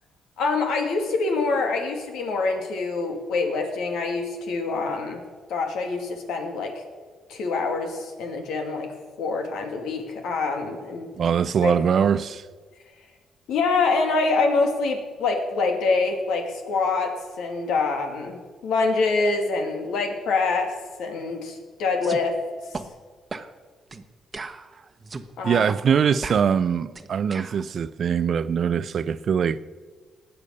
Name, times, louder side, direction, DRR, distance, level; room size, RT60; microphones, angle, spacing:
voice 1, 0.4-5.2 5.5-6.8 7.3-8.9 9.2-11.1 11.6-11.8 13.5-22.4 25.4-25.7, left 3 dB, 85° left, 2.6 m, -25 dB
voice 2, 11.2-12.4 25.4-29.6, right 7 dB, 55° right, 0.6 m, -22 dB
sound 1, 22.0-22.2 22.7-22.9 23.3-23.5 23.9-24.0 24.3-25.3 25.7-25.8 26.2-27.6, right 4 dB, 30° right, 1.0 m, -36 dB
19.5 x 7.1 x 6.7 m
cardioid pair, 90°, 0 cm